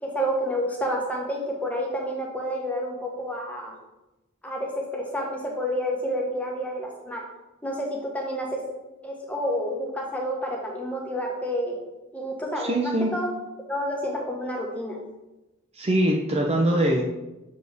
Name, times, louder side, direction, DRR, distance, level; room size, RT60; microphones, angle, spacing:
voice 1, 0.0-3.7 4.4-7.2 7.6-8.6 9.0-11.8 12.1-13.3 13.7-15.0, equal, 5° left, -1 dB, 1.0 m, -29 dB
voice 2, 12.6-13.1 15.7-17.0, right 1 dB, 30° right, 0 dB, 0.5 m, -22 dB
6.6 x 4.2 x 3.4 m, 1.0 s
head